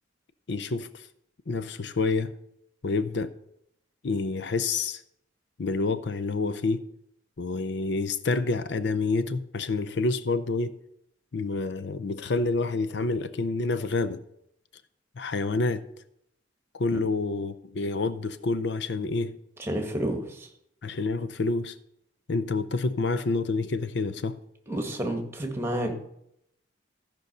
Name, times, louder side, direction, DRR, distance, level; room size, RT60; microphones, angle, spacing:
voice 1, 0.5-1.1 1.5-2.3 2.8-3.3 4.0-5.0 5.6-6.8 7.4-10.8 11.3-14.2 15.2-15.8 16.7-19.3 20.8-21.7 22.3-24.4, left 3 dB, 65° left, 0.6 m, -28 dB
voice 2, 19.6-20.5 24.7-25.9, right 1 dB, 15° right, 1.6 m, -30 dB
14.5 x 5.3 x 6.7 m
head